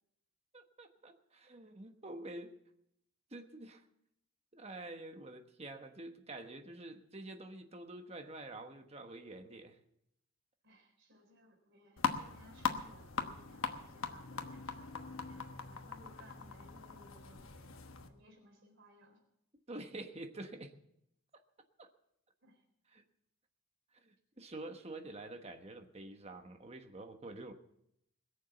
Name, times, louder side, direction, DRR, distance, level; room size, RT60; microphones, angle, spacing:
voice 1, 0.5-2.5 3.3-3.9 4.5-9.8 19.7-20.7 21.8-21.9 22.9-23.0 23.9-27.5, right 2 dB, 30° right, 6 dB, 1.2 m, -48 dB
voice 2, 10.6-17.7 18.1-19.2 22.4-22.6, equal, 55° right, 2 dB, 3.9 m, -61 dB
sound 1, 12.0-18.1, left 5 dB, 60° left, 1.2 m, -40 dB
21.0 x 7.2 x 7.1 m, 0.76 s
head